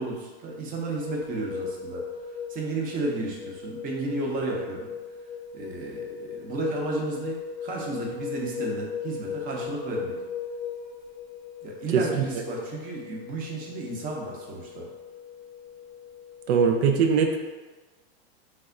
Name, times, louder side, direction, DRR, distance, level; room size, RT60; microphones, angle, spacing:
voice 1, 0.0-2.1 2.5-4.9 5.5-10.2 11.6-14.9, right 2 dB, 25° right, -1 dB, 0.7 m, -32 dB
sound 1, 1.0-16.5, left 6 dB, 25° left, 0.8 m, -38 dB
voice 2, 11.9-12.2 16.5-17.4, right 6 dB, 90° right, 4 dB, 0.5 m, -21 dB
3.4 x 2.1 x 3.6 m, 1.3 s
supercardioid pair, 135°, 32 cm